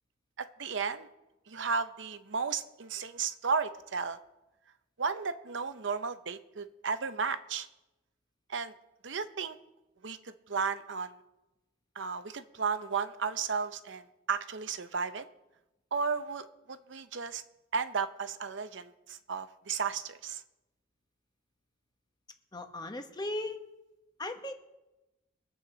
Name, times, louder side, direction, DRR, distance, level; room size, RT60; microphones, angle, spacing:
voice 1, 0.4-1.1 1.5-4.2 5.0-7.7 8.5-8.7 9.0-9.6 10.0-11.1 12.0-14.0 14.3-15.2 15.9-17.4 17.7-20.4, right 5 dB, 70° right, 11 dB, 0.7 m, -34 dB
voice 2, 22.5-23.6 24.2-24.5, left 1 dB, 20° left, 6 dB, 1.1 m, -37 dB
23.0 x 7.9 x 3.9 m, 0.99 s
head